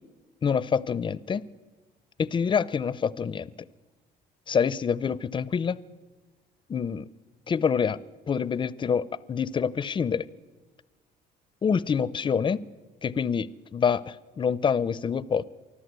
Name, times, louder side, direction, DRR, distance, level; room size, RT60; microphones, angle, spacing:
voice 1, 0.4-1.4 2.2-3.5 4.5-5.8 6.7-7.1 7.5-8.0 8.3-10.3 11.6-12.6 13.0-15.4, left 6 dB, 30° left, 20 dB, 0.6 m, -26 dB
24.0 x 14.0 x 8.2 m, 1.3 s
cardioid pair, 110°, 17 cm